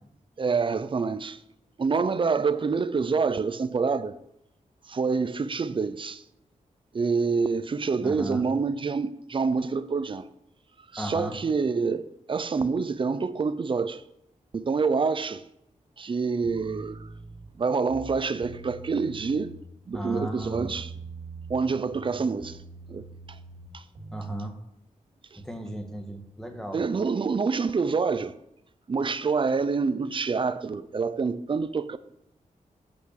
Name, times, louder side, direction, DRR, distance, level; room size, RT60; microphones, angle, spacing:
voice 1, 0.4-1.4 1.8-4.2 4.9-6.2 6.9-10.3 10.9-14.0 14.5-15.4 16.0-17.1 17.6-19.5 19.9-20.9 21.5-22.6 22.9-23.4 23.7-23.8 25.3-25.4 26.7-28.3 28.9-32.0, right 4 dB, 40° right, 0.5 m, -27 dB
voice 2, 8.0-8.4 11.0-11.4 19.9-20.7 24.1-24.5 25.4-26.8, right 1 dB, 5° left, 1.4 m, -35 dB
sound 1, 16.4-17.5 17.8-19.6 19.9-21.6 21.9-24.3, right 3 dB, 90° right, 2.6 m, -43 dB
8.4 x 5.9 x 6.5 m
wide cardioid pair, 105°, 14 cm